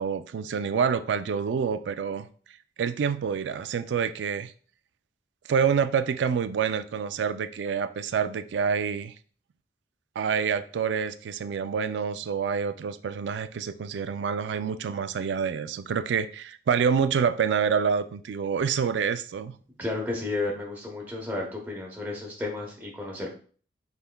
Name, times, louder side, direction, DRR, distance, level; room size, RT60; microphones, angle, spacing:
voice 1, 0.0-2.3 2.8-4.5 5.5-9.1 10.2-19.5, right 6 dB, 85° right, 0.3 m, -27 dB
voice 2, 19.8-23.3, left 2 dB, 10° right, 0.8 m, -32 dB
5.5 x 3.4 x 2.2 m
head